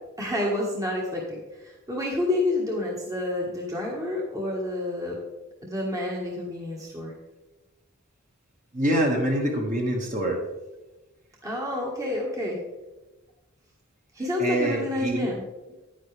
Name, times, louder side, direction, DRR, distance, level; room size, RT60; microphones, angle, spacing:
voice 1, 0.2-5.2 5.6-7.1 11.4-12.6 14.1-15.4, left 2 dB, 15° right, -3 dB, 1.5 m, -29 dB
voice 2, 8.7-10.4 14.4-15.3, right 1 dB, 35° right, 0 dB, 1.7 m, -25 dB
10.0 x 10.0 x 3.4 m, 1.1 s
head